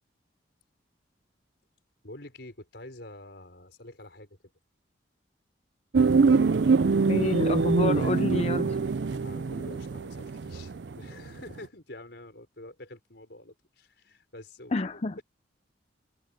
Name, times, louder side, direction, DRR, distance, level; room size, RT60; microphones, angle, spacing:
voice 1, 2.0-4.4 9.1-15.2, left 1 dB, 60° left, 5.6 m, -47 dB
sound 1, 5.9-11.3 11.6-11.7, right 4 dB, 65° right, 0.5 m, -24 dB
voice 2, 7.1-8.8 14.7-15.2, left 2 dB, 35° left, 0.5 m, -29 dB
head